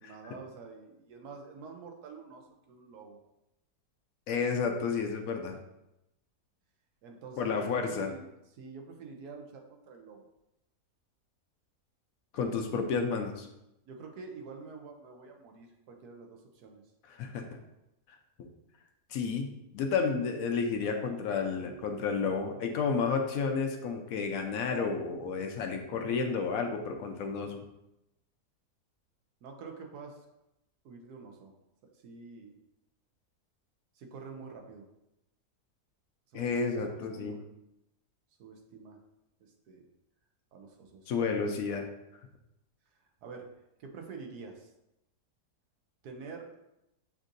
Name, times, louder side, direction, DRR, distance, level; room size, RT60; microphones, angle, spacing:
voice 1, 0.0-3.2 7.0-10.3 13.9-16.8 29.4-30.3 30.8-31.6 31.9-32.6 33.9-34.9 36.3-37.4 38.4-39.0 39.4-39.8 40.5-41.1 43.2-43.5 43.8-44.7 46.0-46.5, right 4 dB, 80° right, 2 dB, 1.2 m, -47 dB
voice 2, 4.3-5.6 7.4-8.1 12.3-13.5 17.1-17.5 19.1-19.5 19.7-27.6 36.3-37.4 41.1-41.9, left 5 dB, 70° left, 4 dB, 0.9 m, -31 dB
7.1 x 2.6 x 2.5 m, 0.87 s
omnidirectional pair, 1.7 m